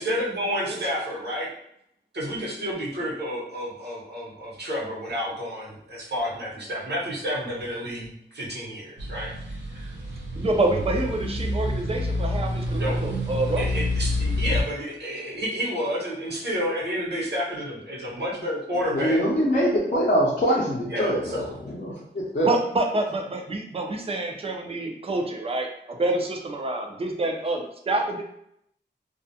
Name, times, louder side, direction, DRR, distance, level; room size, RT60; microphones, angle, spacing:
voice 1, 0.0-1.5 2.1-9.3 9.7-9.9 12.8-13.0 13.6-19.2 20.9-21.6, equal, 65° right, -6 dB, 0.9 m, -30 dB
sound 1, 9.0-14.6, left 1 dB, 80° right, 0.6 m, -28 dB
voice 2, 10.4-13.7 22.4-28.2, right 2 dB, 30° right, 3 dB, 0.4 m, -27 dB
voice 3, 18.9-21.2 21.7-22.5, equal, 45° left, -8 dB, 0.6 m, -23 dB
2.3 x 2.1 x 2.7 m, 0.74 s
wide cardioid pair, 100°, 19 cm